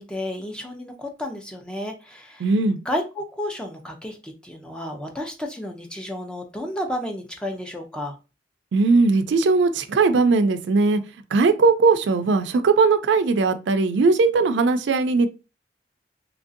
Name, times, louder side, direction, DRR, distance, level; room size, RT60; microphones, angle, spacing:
voice 1, 0.0-2.5 2.9-8.2, left 1 dB, 5° left, 0.4 m, -32 dB
voice 2, 2.4-2.8 8.7-11.0 11.3-15.3, right 4 dB, 80° right, 0.4 m, -19 dB
3.0 x 2.6 x 2.5 m
head